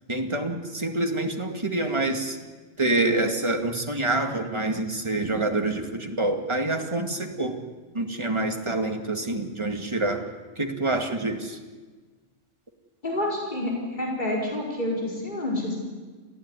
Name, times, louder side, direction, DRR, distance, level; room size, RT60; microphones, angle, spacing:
voice 1, 0.1-2.4 2.8-7.6 7.9-10.3 10.6-11.6, right 2 dB, 20° right, 3 dB, 2.2 m, -26 dB
voice 2, 13.0-15.7, left 1 dB, 35° left, -3 dB, 5.4 m, -28 dB
27.5 x 16.0 x 9.9 m, 1.4 s
omnidirectional pair, 1.4 m